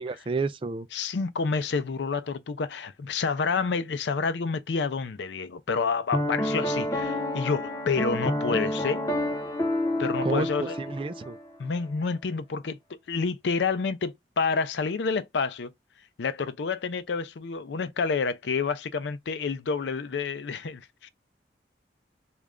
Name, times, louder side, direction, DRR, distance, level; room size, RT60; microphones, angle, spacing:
voice 1, 0.0-0.9 10.2-11.4, right 3 dB, 30° right, 0.3 m, -30 dB
voice 2, 0.9-9.0 10.0-10.8 11.6-15.7 16.2-21.1, left 5 dB, 80° left, 0.5 m, -29 dB
Piano, 6.1-11.4, left 1 dB, 20° left, 0.5 m, -29 dB
3.2 x 2.4 x 3.6 m
head